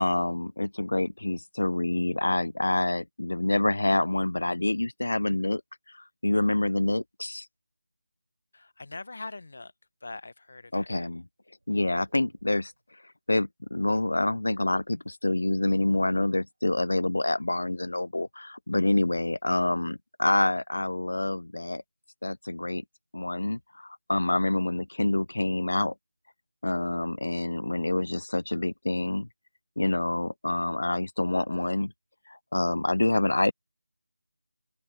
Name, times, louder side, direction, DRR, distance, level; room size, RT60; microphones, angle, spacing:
voice 1, 0.0-5.6 6.2-7.5 10.7-11.2 11.7-12.7 13.3-21.8 22.2-22.8 23.1-25.9 26.6-29.3 29.8-31.9 32.3-33.5, left 2 dB, 85° left, 0.3 m, -27 dB
voice 2, 8.5-9.7 10.0-11.0, left 3 dB, 50° left, 0.9 m, -42 dB
sound 1, 11.6-12.9 14.7-15.8 16.5-17.0, right 2 dB, 70° right, 4.1 m, -64 dB
open air
figure-of-eight pair, 175°, 0 cm